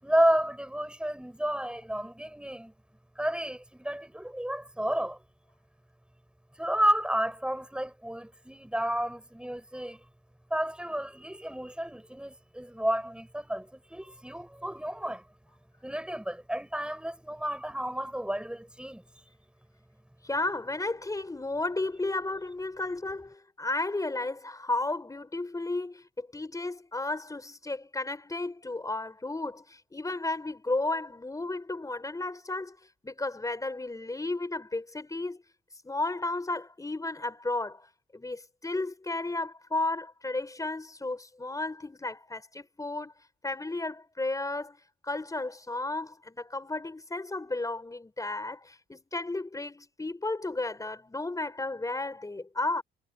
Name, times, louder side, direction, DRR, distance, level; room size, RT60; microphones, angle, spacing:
voice 1, 0.0-2.7 3.2-5.2 6.6-10.0 10.5-15.2 15.8-19.0, equal, 5° right, 6.3 m, -31 dB
voice 2, 20.2-32.8 33.0-35.4 35.8-37.9 38.1-43.1 43.4-44.8 45.0-52.8, left 2 dB, 15° left, 5.3 m, -33 dB
cardioid pair, 90°, 20 cm